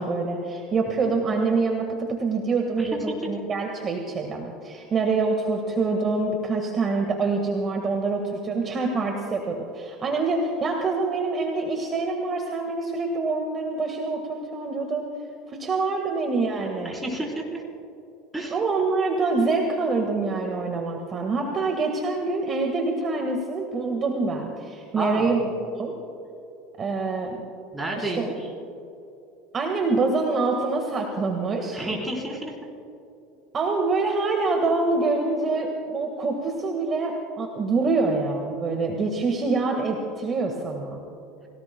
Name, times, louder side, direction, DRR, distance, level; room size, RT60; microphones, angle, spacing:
voice 1, 0.0-15.1 15.5-16.9 18.5-25.9 26.8-27.4 28.0-28.2 29.5-31.8 33.5-41.0, right 3 dB, 30° right, 2 dB, 1.6 m, -25 dB
voice 2, 16.8-17.6 18.3-18.6 24.9-25.4 27.7-28.5 31.7-32.5, right 1 dB, 10° right, -2 dB, 4.1 m, -30 dB
30.0 x 17.5 x 2.3 m, 2.8 s
supercardioid pair, 125°, 0 cm